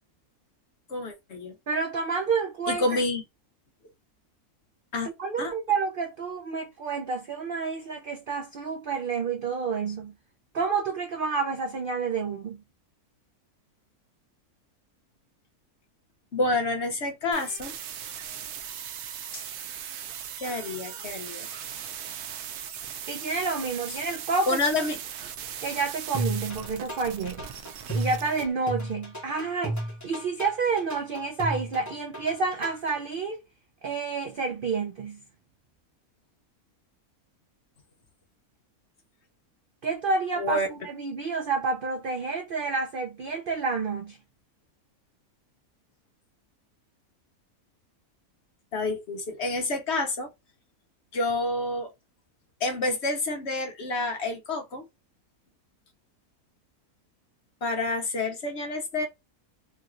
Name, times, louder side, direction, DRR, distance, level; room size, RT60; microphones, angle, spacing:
voice 1, 0.9-1.5 2.7-3.2 4.9-5.1 5.4-5.5 16.3-17.7 19.3-19.4 20.4-21.5 24.5-25.0 40.4-40.7 48.7-50.3 51.1-51.9 52.6-54.8 57.6-59.1, left 2 dB, 55° left, 0.8 m, -28 dB
voice 2, 1.7-2.8 5.2-10.1 10.5-12.6 23.1-24.6 25.6-27.4 27.9-33.4 33.8-35.2 39.8-44.2, right 4 dB, 70° right, 0.5 m, -29 dB
sound 1, 17.3-28.4, right 9 dB, 90° right, 1.1 m, -39 dB
sound 2, 26.1-33.0, right 1 dB, 15° left, 0.9 m, -33 dB
3.1 x 2.9 x 2.4 m
omnidirectional pair, 1.6 m